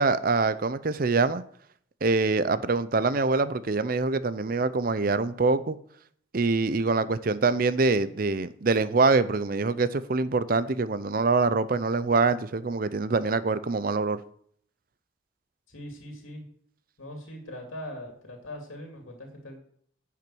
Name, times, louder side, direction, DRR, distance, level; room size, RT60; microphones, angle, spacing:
voice 1, 0.0-1.4 2.0-5.8 6.3-14.2, right 3 dB, 45° right, 15 dB, 0.5 m, -24 dB
voice 2, 15.7-16.4 17.0-19.6, left 1 dB, 90° left, 2 dB, 2.6 m, -41 dB
10.5 x 5.9 x 7.8 m, 0.63 s
head